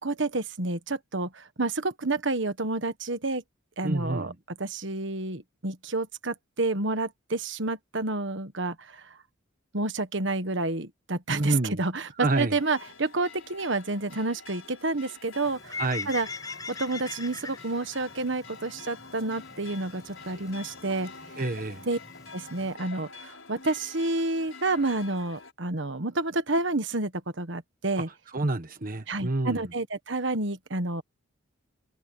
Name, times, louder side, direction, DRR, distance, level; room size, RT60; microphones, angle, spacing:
voice 1, 0.0-3.4 3.8-4.3 4.6-9.1 9.7-15.8 16.1-16.3 16.7-21.1 21.9-22.0 22.3-27.1 27.4-28.1 29.1-31.0, right 2 dB, 60° right, 1.5 m, -29 dB
voice 2, 3.8-4.3 11.3-11.8 12.2-12.6 15.7-16.1 21.4-21.8 28.3-29.6, right 2 dB, 45° right, 1.3 m, -28 dB
sound 1, 12.6-25.5, left 4 dB, 80° left, 4.7 m, -47 dB
Bird, 15.4-22.7, left 4 dB, 20° left, 7.1 m, -42 dB
head